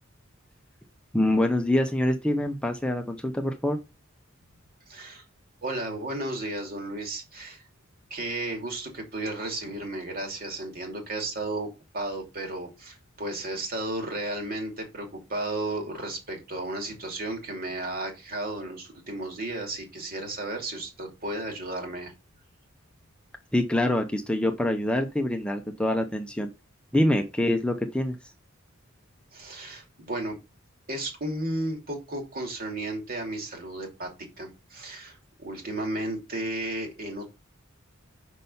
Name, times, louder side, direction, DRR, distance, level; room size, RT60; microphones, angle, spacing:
voice 1, 1.1-3.8 23.5-26.5 26.9-28.2, left 1 dB, 5° left, 4 dB, 0.7 m, -25 dB
voice 2, 4.9-5.2 5.6-7.6 8.1-11.7 11.9-22.1 29.3-30.4 30.9-34.1 34.4-37.3, right 2 dB, 45° right, 3 dB, 2.7 m, -33 dB
6.1 x 5.4 x 5.5 m, 0.27 s
head